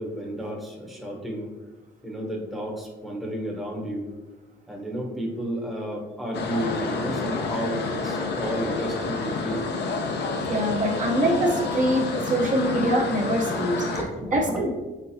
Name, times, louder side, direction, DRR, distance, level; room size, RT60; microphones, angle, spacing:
voice 1, 0.0-1.5 2.0-4.1 4.7-9.6 13.8-14.6, equal, ahead, -1 dB, 0.9 m, -32 dB
sound 1, 6.3-14.0, left 3 dB, 60° left, 0.6 m, -29 dB
voice 2, 10.5-13.8 14.3-14.7, right 1 dB, 40° right, -1 dB, 0.7 m, -24 dB
4.3 x 3.8 x 2.7 m, 1.2 s
cardioid pair, 90°, 20 cm